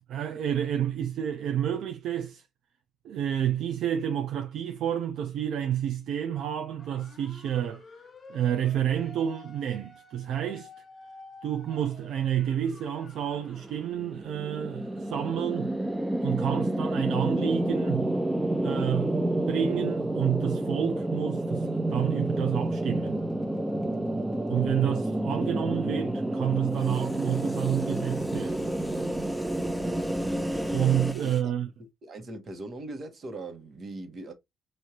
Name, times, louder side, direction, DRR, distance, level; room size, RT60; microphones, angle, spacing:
voice 1, 0.1-2.4 3.0-7.8 8.3-10.7 11.4-15.7 16.2-18.2 18.6-23.2 24.5-28.8 30.7-31.7, right 10 dB, 75° right, 0.5 m, -29 dB
sound 1, 6.8-14.0, left 3 dB, 40° left, 1.1 m, -51 dB
sound 2, 13.4-31.1, right 1 dB, 10° right, 0.5 m, -29 dB
sound 3, 20.4-25.6 26.7-31.4, left 1 dB, 10° left, 0.9 m, -50 dB
voice 2, 31.2-34.3, right 2 dB, 50° right, 1.3 m, -40 dB
4.8 x 2.7 x 2.9 m
cardioid pair, 90°, 0 cm